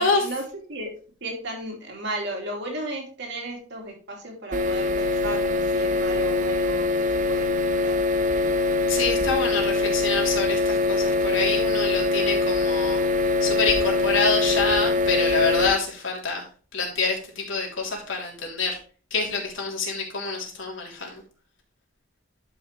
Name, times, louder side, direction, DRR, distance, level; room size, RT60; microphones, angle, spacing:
voice 1, 0.0-8.0, right 1 dB, 60° right, 1 dB, 2.7 m, -35 dB
sound 1, 4.5-15.7, left 2 dB, 40° right, 0.8 m, -23 dB
voice 2, 8.9-13.0 13.4-16.4 16.7-18.8 19.1-21.2, left 4 dB, 80° left, -1 dB, 3.4 m, -26 dB
11.5 x 5.7 x 3.2 m, 0.38 s
head